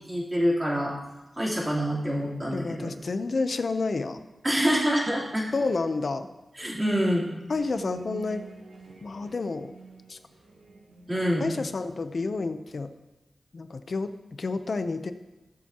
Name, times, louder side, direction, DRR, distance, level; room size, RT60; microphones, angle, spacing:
voice 1, 0.1-1.0 1.4-2.9 4.4-5.4 6.6-7.3 11.1-11.5, equal, 20° right, -5 dB, 3.7 m, -26 dB
voice 2, 2.5-4.3 5.5-6.3 7.5-8.4 9.0-9.7 10.1-10.2 11.4-12.9 13.5-14.1 14.4-15.1, left 3 dB, 60° left, 9 dB, 0.8 m, -29 dB
sound 1, 7.5-12.4, right 4 dB, 90° right, 2.9 m, -47 dB
21.5 x 7.3 x 3.0 m, 1.1 s
wide cardioid pair, 80°, 0 cm